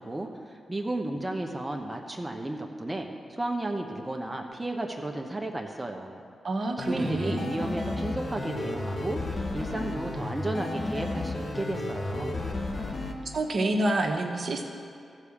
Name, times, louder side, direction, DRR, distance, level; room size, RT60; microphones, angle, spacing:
voice 1, 0.0-6.2 6.8-12.3, right 1 dB, 20° right, 2 dB, 1.0 m, -33 dB
voice 2, 6.4-7.5 13.3-14.6, right 2 dB, 60° right, 2 dB, 1.2 m, -28 dB
sound 1, 6.8-13.1, left 2 dB, 45° left, 1.4 m, -33 dB
14.5 x 4.8 x 7.2 m, 2.4 s
cardioid pair, 50°, 0 cm